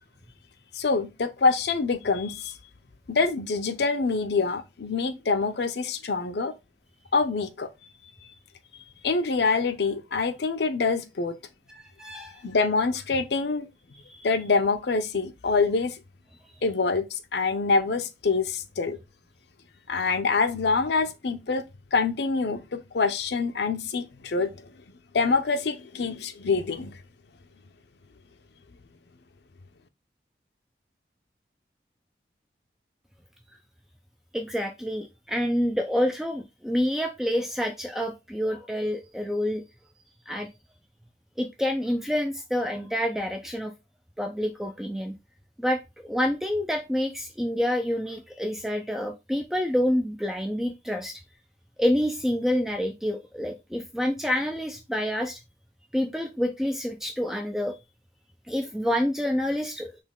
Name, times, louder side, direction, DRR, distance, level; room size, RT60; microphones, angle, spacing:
voice 1, 0.7-2.5 3.1-6.5 7.1-7.7 8.0-8.3 9.0-11.4 12.4-13.7 14.2-16.0 16.6-19.0 19.9-21.6 21.9-24.5 25.1-26.9, left 4 dB, 80° left, 0.6 m, -25 dB
voice 2, 11.7-12.4 14.1-14.3 34.3-39.6 40.3-40.5 41.4-43.7 44.2-45.1 45.6-51.2 51.8-55.4 55.9-57.8 58.5-60.0, equal, ahead, 0.4 m, -28 dB
4.3 x 3.0 x 3.6 m
head